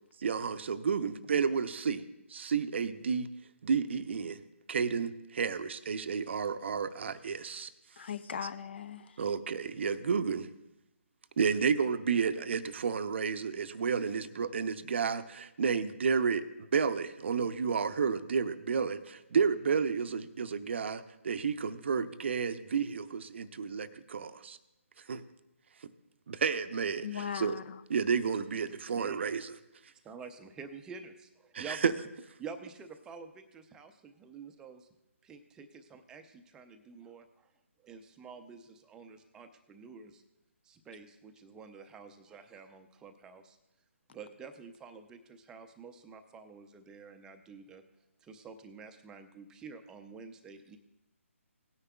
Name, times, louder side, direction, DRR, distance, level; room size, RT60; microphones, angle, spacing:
voice 1, 0.2-2.0 2.3-3.3 3.6-4.4 4.7-7.7 9.2-10.5 11.4-24.6 25.1-25.2 26.3-27.6 27.9-29.5 31.5-31.9, right 6 dB, 55° right, 12 dB, 0.6 m, -31 dB
voice 2, 8.0-9.2 27.0-27.8, left 8 dB, 50° left, 14 dB, 0.5 m, -39 dB
voice 3, 30.0-32.0 32.4-34.9 35.2-37.5 37.8-40.2 40.6-43.6 44.1-47.8 48.2-50.8, right 4 dB, 10° right, 7 dB, 0.5 m, -48 dB
17.5 x 9.7 x 2.3 m, 0.93 s
figure-of-eight pair, 145°, 8 cm